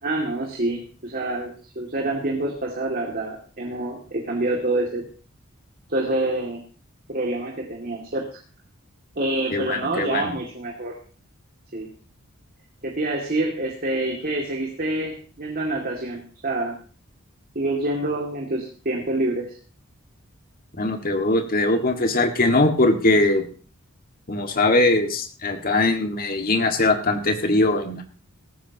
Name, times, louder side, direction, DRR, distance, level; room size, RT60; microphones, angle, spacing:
voice 1, 0.0-5.0 5.9-6.6 7.1-8.3 9.2-11.0 11.7-11.9 12.8-16.8 17.5-19.6, right 2 dB, 45° right, 0 dB, 2.4 m, -27 dB
voice 2, 9.5-10.3 20.8-23.4 24.3-28.0, left 2 dB, 45° left, 5 dB, 1.9 m, -21 dB
17.5 x 14.5 x 2.9 m, 0.38 s
head